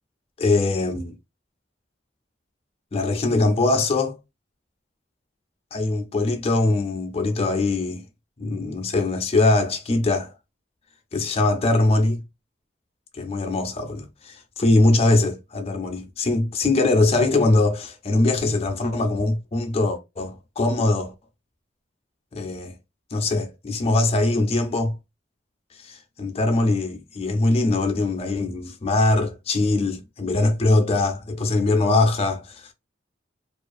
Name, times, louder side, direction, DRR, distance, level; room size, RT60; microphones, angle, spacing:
voice 1, 0.4-1.1 2.9-4.1 5.7-8.0 8.4-10.3 11.1-12.2 13.1-21.1 22.3-22.7 23.1-24.9 25.8-32.7, left 2 dB, 30° left, 0.4 m, -22 dB
2.4 x 2.3 x 2.5 m
head